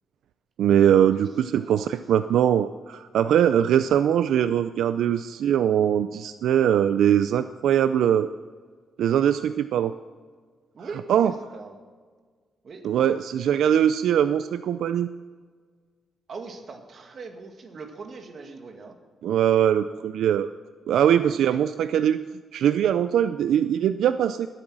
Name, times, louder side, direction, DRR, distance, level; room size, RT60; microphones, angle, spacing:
voice 1, 0.6-8.3 9.0-9.9 11.1-11.3 12.8-15.1 19.2-20.5 20.9-22.2 22.5-24.5, right 9 dB, 85° right, 12 dB, 0.4 m, -21 dB
voice 2, 1.2-2.4 10.7-11.8 12.6-12.9 16.3-19.0 21.2-21.6, right 4 dB, 45° right, 4 dB, 1.9 m, -42 dB
20.0 x 8.9 x 6.2 m, 1.6 s
cardioid pair, 145°, 0 cm